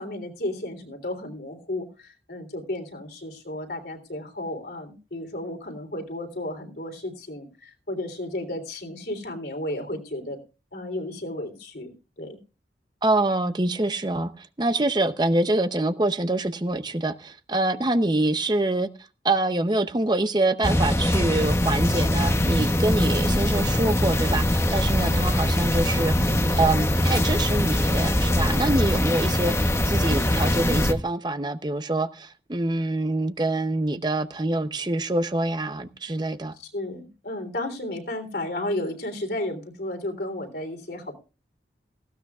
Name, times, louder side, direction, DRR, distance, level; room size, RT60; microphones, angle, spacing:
voice 1, 0.0-10.4 10.7-12.4 24.9-25.3 36.6-41.1, left 1 dB, 65° left, 4 dB, 3.5 m, -33 dB
voice 2, 13.0-18.9 19.2-36.5, right 2 dB, 25° right, 10 dB, 0.7 m, -25 dB
sound 1, 20.6-30.9, left 1 dB, 15° left, 1.0 m, -22 dB
18.5 x 16.0 x 2.4 m, 0.32 s
head